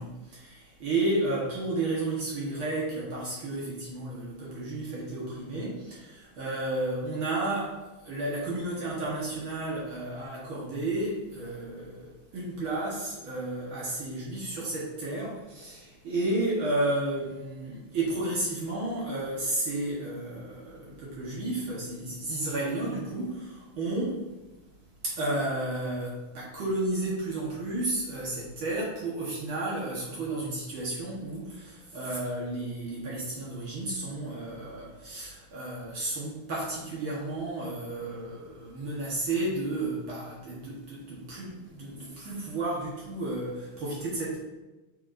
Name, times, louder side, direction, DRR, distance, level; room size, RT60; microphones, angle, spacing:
voice 1, 0.0-24.2 25.0-44.4, right 2 dB, 65° right, -6 dB, 2.2 m, -32 dB
8.2 x 6.4 x 2.7 m, 1.1 s
omnidirectional pair, 2.4 m